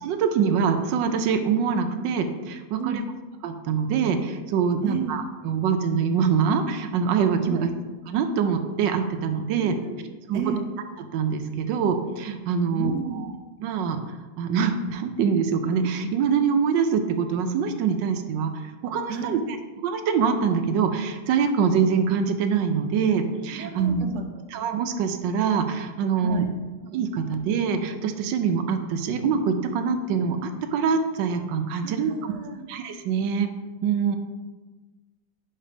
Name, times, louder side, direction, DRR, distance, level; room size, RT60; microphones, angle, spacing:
voice 1, 0.0-3.0 3.4-7.7 8.1-9.8 10.3-10.4 11.1-13.3 13.6-14.0 14.4-18.5 18.8-19.4 19.8-24.0 24.5-26.4 26.9-32.3 32.7-33.5 33.8-34.2, right 6 dB, 90° right, 7 dB, 1.3 m, -24 dB
voice 2, 4.8-5.2 7.4-7.6 9.6-10.7 12.6-13.3 19.1-19.4 23.6-24.2 26.2-26.4 31.8-32.6, right 6 dB, 55° right, 3 dB, 0.9 m, -32 dB
5.5 x 4.9 x 5.1 m, 1.2 s
omnidirectional pair, 1.9 m